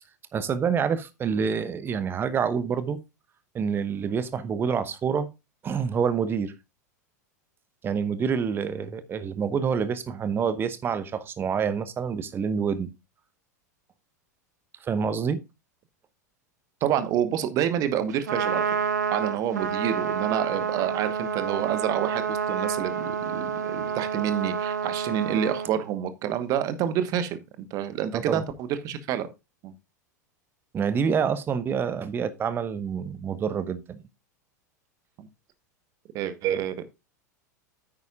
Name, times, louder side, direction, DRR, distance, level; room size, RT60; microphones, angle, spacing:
voice 1, 0.3-3.0 3.5-5.3 5.6-6.5 7.8-12.9 14.8-15.4 28.1-28.4 30.7-34.0, right 6 dB, 25° right, 0.9 m, -27 dB
voice 2, 16.8-18.6 19.1-27.4 27.7-29.3 29.6-29.7 35.2-35.3 36.1-36.8, right 10 dB, 40° right, 1.2 m, -28 dB
Trumpet, 18.1-25.7, right 7 dB, 70° right, 1.0 m, -29 dB
9.6 x 8.8 x 2.4 m
figure-of-eight pair, 90°, 10 cm